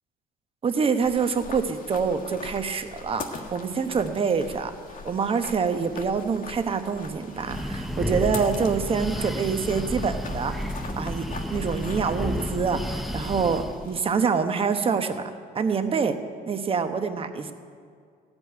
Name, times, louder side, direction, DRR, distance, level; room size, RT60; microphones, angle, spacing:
voice 1, 0.6-4.8 5.0-10.5 10.9-11.3 11.5-16.1 16.5-17.5, right 5 dB, 35° right, 8 dB, 1.0 m, -26 dB
sound 1, 1.0-14.0, left 4 dB, 55° left, 1.6 m, -42 dB
Breathing, 7.3-13.9, equal, ahead, 0.5 m, -31 dB
16.0 x 5.4 x 9.4 m, 2.1 s
cardioid pair, 110°, 17 cm